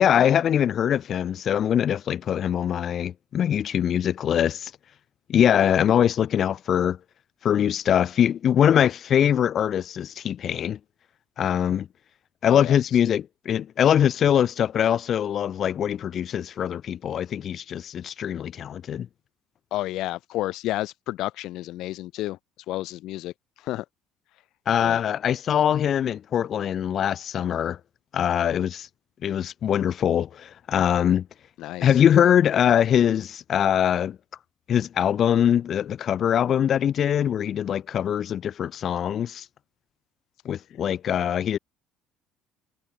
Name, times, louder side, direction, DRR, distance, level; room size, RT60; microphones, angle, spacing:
voice 1, 0.0-4.7 5.3-7.0 7.4-10.8 11.4-11.9 12.4-19.1 24.7-27.8 28.1-28.9 29.2-31.3 31.8-34.2 34.7-39.4 40.4-41.6, left 9 dB, 50° left, 1.3 m, -22 dB
voice 2, 19.7-22.4 22.7-23.3 23.6-23.8 24.8-25.0 31.6-31.9, left 16 dB, 70° left, 0.4 m, -31 dB
hypercardioid pair, 70°, 0 cm